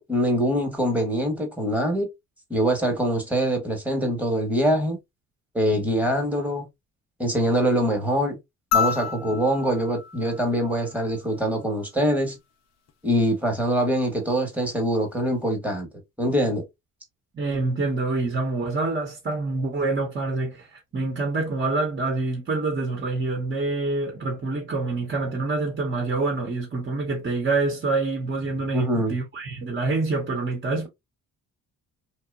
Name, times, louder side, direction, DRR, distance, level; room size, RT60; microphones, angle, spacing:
voice 1, 0.0-2.1 2.5-5.0 5.5-6.7 7.2-8.4 8.7-12.4 13.0-15.9 16.2-16.6 28.7-29.1, equal, 5° right, 1.1 m, -24 dB
sound 1, 8.7-11.3 12.9-13.0, left 7 dB, 60° left, 0.6 m, -29 dB
voice 2, 17.3-30.9, right 3 dB, 35° right, 0.9 m, -26 dB
2.8 x 2.2 x 2.3 m
cardioid pair, 90°, 30 cm